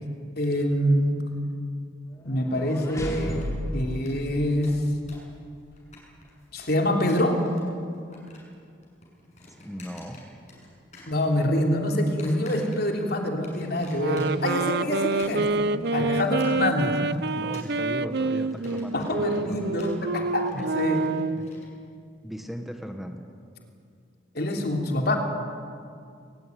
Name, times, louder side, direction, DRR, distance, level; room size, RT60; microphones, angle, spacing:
voice 1, 0.4-1.2 2.2-3.5 3.7-4.8 6.5-7.4 11.0-15.5 15.9-17.0 18.9-21.1 24.3-25.2, left 1 dB, 55° left, 2 dB, 3.3 m, -25 dB
sound 1, 2.1-5.3, equal, 15° left, 3.0 m, -35 dB
sound 2, 3.2-3.8 4.1-4.2 4.4-5.3 5.6-6.4 6.9-7.7 7.9-8.6 8.8-10.7 10.9-11.7 12.2-13.0 13.4-14.5 14.9-21.7, left 3 dB, 40° left, 6.9 m, -50 dB
voice 2, 9.6-10.3 16.0-16.1 17.3-19.8 20.5-20.7 21.4-21.5 22.2-23.3, equal, ahead, 4 dB, 1.5 m, -37 dB
sound 3, 13.9-21.5, right 3 dB, 60° right, 0.7 m, -27 dB
21.5 x 20.5 x 9.4 m, 2.3 s
head